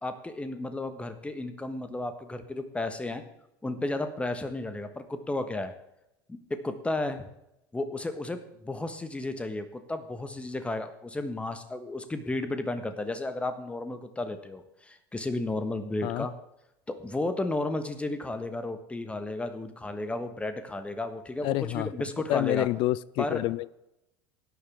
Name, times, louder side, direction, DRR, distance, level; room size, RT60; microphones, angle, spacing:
voice 1, 0.0-3.2 3.6-5.7 6.3-7.3 7.7-16.3 16.9-22.7 23.2-23.4, left 2 dB, 10° left, 9 dB, 1.3 m, -33 dB
voice 2, 21.4-21.9 22.3-23.7, left 17 dB, 45° left, 21 dB, 0.4 m, -28 dB
16.5 x 10.0 x 3.5 m, 0.86 s
figure-of-eight pair, 70°, 12 cm